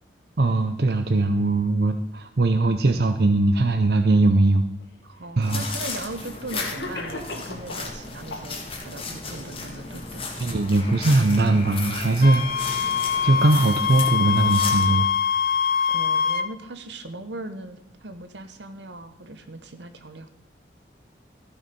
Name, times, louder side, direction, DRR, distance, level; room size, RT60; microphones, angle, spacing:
voice 1, 0.4-4.7 5.4-5.6 10.4-12.9 13.2-15.1, right 2 dB, 60° right, 7 dB, 0.6 m, -20 dB
Cough, 4.8-4.9 5.9-6.0 6.5-7.9 8.3-8.9, left 2 dB, 85° left, 1.7 m, -36 dB
voice 2, 5.0-10.3 15.9-20.3, right 2 dB, 85° right, 9 dB, 1.2 m, -39 dB
sound 1, 5.4-15.1, left 3 dB, 30° left, 1.7 m, -35 dB
Wind instrument woodwind instrument, 12.2-16.5, left 7 dB, 55° left, 0.7 m, -23 dB
14.5 x 6.5 x 5.3 m, 0.83 s
head